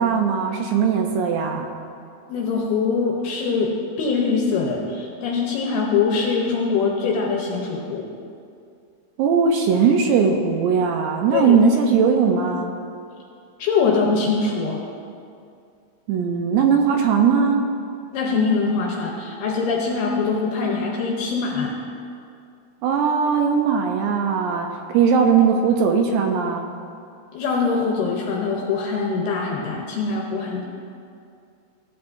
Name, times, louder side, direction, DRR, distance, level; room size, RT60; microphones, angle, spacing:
voice 1, 0.0-1.7 9.2-12.7 16.1-17.6 22.8-26.7, right 6 dB, 80° right, 3 dB, 2.6 m, -19 dB
voice 2, 2.3-3.7 4.0-8.1 11.3-11.6 13.6-14.8 18.1-21.7 27.3-30.6, left 4 dB, 75° left, -1 dB, 2.5 m, -23 dB
15.0 x 8.5 x 2.6 m, 2.4 s
omnidirectional pair, 5.3 m